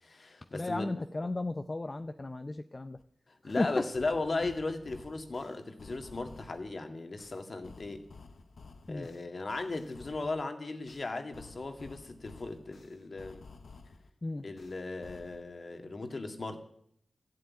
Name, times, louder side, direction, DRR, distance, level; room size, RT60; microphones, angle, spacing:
voice 1, 0.0-0.9 3.3-8.1 8.9-13.4 14.4-16.6, left 3 dB, 50° left, 6 dB, 1.9 m, -37 dB
voice 2, 0.5-3.0 3.4-3.9 8.9-9.1 14.2-14.4, left 2 dB, 30° left, 8 dB, 0.6 m, -34 dB
sound 1, 3.0-3.1 3.5-6.7 7.2-10.4 10.9-14.1 14.6-15.4, left 4 dB, 70° left, 1.0 m, -53 dB
14.0 x 7.8 x 9.7 m, 0.71 s
wide cardioid pair, 70°, 0 cm